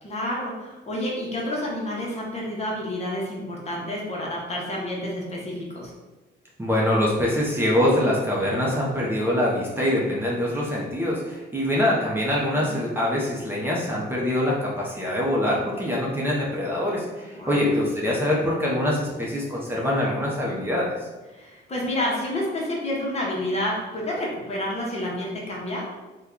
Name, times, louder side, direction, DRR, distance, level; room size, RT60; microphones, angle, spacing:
voice 1, 0.0-5.9 12.5-12.7 17.3-17.6 21.3-25.8, left 1 dB, 35° left, -3 dB, 1.0 m, -29 dB
voice 2, 6.6-20.9, left 1 dB, 10° right, -5 dB, 0.7 m, -24 dB
2.8 x 2.3 x 3.6 m, 1.2 s
cardioid pair, 90°, 20 cm